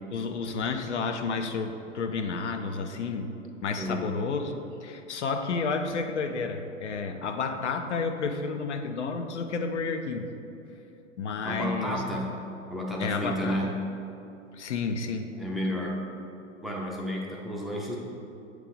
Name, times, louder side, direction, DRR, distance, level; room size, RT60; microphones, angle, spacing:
voice 1, 0.1-3.3 3.6-10.3 11.2-12.0 13.0-13.7 14.5-15.3, left 4 dB, 65° left, 5 dB, 0.7 m, -31 dB
voice 2, 3.8-4.2 11.4-12.4 12.7-13.7 15.4-16.0 16.6-18.0, equal, ahead, -3 dB, 0.6 m, -31 dB
8.8 x 3.3 x 5.1 m, 2.8 s
figure-of-eight pair, 100°, 38 cm